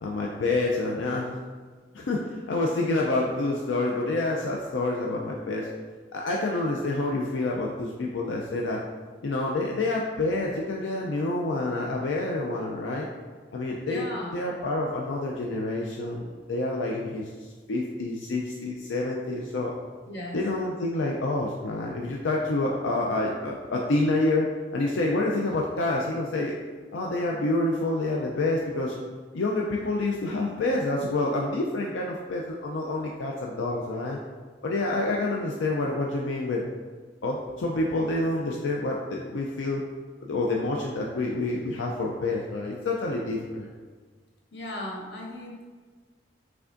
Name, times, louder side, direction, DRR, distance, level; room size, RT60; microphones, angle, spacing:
voice 1, 0.0-1.3 1.9-5.7 6.1-8.8 9.2-13.1 13.5-19.7 20.3-26.5 26.9-28.9 29.3-34.2 34.6-36.6 37.2-39.8 40.2-43.7, left 2 dB, 90° left, -1 dB, 0.4 m, -28 dB
voice 2, 13.9-14.4 20.1-20.4 44.5-45.7, left 1 dB, 65° left, -2 dB, 0.9 m, -36 dB
5.7 x 3.5 x 2.5 m, 1.5 s
head